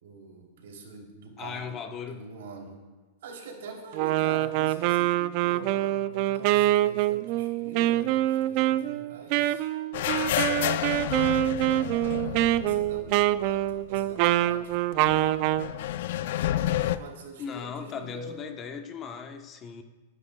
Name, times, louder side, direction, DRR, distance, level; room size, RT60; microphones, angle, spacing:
voice 1, 0.0-1.8 2.1-2.8 3.2-9.7 10.3-10.9 11.5-15.8 16.6-18.4, right 4 dB, 80° right, 1 dB, 3.0 m, -45 dB
voice 2, 1.4-2.2 17.4-19.8, left 6 dB, 25° left, 5 dB, 0.9 m, -37 dB
Wind instrument woodwind instrument, 3.9-15.7, right 14 dB, 45° right, 0.4 m, -25 dB
sound 1, 9.9-13.7 14.0-14.1 15.1-17.0, left 12 dB, 65° left, 0.5 m, -30 dB
28.5 x 9.9 x 2.3 m, 1.3 s
supercardioid pair, 145°, 0 cm